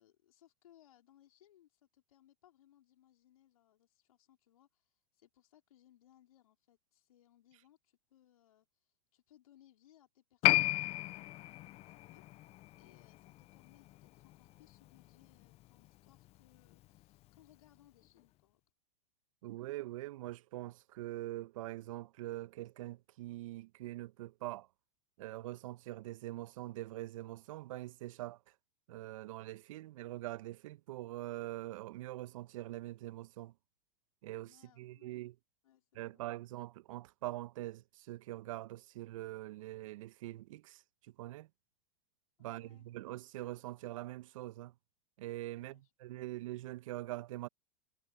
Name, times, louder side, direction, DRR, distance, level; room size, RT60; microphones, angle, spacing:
voice 1, 0.0-12.5 12.8-18.6 34.5-35.2 35.6-36.3 42.4-42.9 45.5-46.2, left 12 dB, 75° left, 4.2 m, -67 dB
Piano, 10.4-17.4 17.6-17.7, left 18 dB, 35° left, 0.6 m, -35 dB
voice 2, 19.4-24.7 25.2-28.4 28.9-33.5 34.2-35.3 35.9-40.8 41.2-41.5 42.4-44.7 45.2-47.5, right 16 dB, 65° right, 1.5 m, -43 dB
hypercardioid pair, 105°, 18 cm